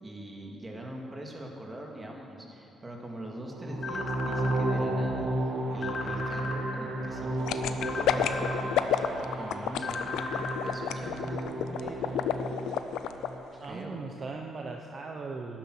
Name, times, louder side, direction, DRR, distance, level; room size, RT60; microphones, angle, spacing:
voice 1, 0.0-9.1 9.3-12.3 13.5-14.0, right 1 dB, 20° right, 0 dB, 2.2 m, -42 dB
sound 1, 3.4-13.6, right 1 dB, 85° right, 2.1 m, -33 dB
sound 2, 3.8-4.6 5.8-6.6 7.8-8.6 9.8-10.6, left 3 dB, 60° left, 1.2 m, -36 dB
sound 3, 7.5-13.3 13.6-13.7, left 10 dB, 85° left, 0.5 m, -29 dB
voice 2, 13.6-15.6, right 4 dB, 45° right, 1 dB, 0.8 m, -38 dB
11.5 x 10.5 x 6.2 m, 2.8 s
cardioid pair, 90°, 0 cm